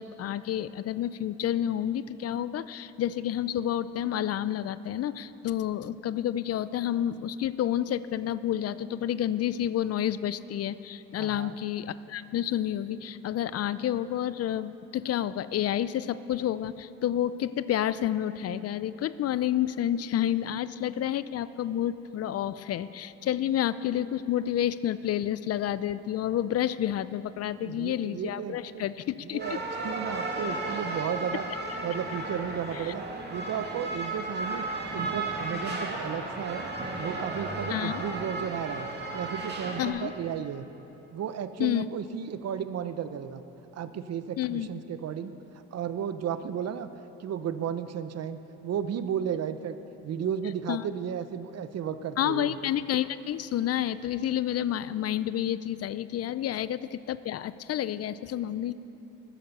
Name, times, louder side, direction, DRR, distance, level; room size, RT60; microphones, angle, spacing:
voice 1, 0.0-29.4 32.7-32.9 37.7-38.0 39.8-40.1 41.6-41.9 44.4-44.7 50.7-50.8 52.2-58.7, left 11 dB, 55° left, 16 dB, 0.4 m, -29 dB
voice 2, 11.2-11.6 27.6-28.8 29.3-31.5 31.8-33.0 33.3-36.7 37.0-38.9 39.1-40.7 41.1-43.4 43.7-45.4 45.7-46.9 47.2-49.8 50.0-52.5, right 8 dB, 55° right, 11 dB, 0.7 m, -34 dB
sound 1, 29.4-39.9, right 2 dB, 35° right, 2.2 m, -34 dB
13.0 x 10.0 x 6.7 m, 3.0 s
cardioid pair, 90°, 30 cm